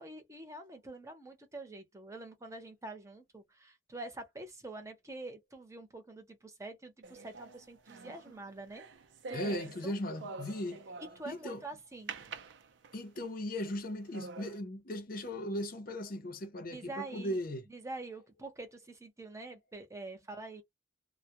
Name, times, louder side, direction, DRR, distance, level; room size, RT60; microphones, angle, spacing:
voice 1, 0.0-8.8 9.3-9.6 9.8-10.0 11.0-12.1 16.7-20.6, right 2 dB, 15° right, 0.8 m, -46 dB
sound 1, 7.0-11.4 12.1-13.2 13.7-13.8 14.1-14.6, right 4 dB, 85° right, 0.5 m, -46 dB
voice 2, 9.3-10.8 11.2-11.6 12.9-17.6, left 1 dB, 55° left, 0.7 m, -37 dB
2.2 x 2.1 x 2.8 m
head